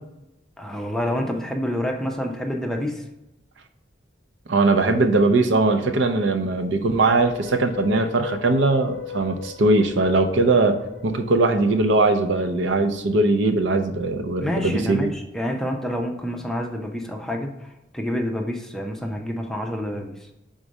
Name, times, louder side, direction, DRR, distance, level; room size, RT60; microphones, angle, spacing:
voice 1, 0.6-3.0 14.4-20.2, equal, ahead, 2 dB, 0.5 m, -28 dB
voice 2, 4.5-15.1, right 2 dB, 70° right, 6 dB, 0.6 m, -20 dB
sound 1, 6.8-14.1, left 7 dB, 70° left, 0.4 m, -38 dB
4.8 x 3.8 x 5.2 m, 0.90 s
head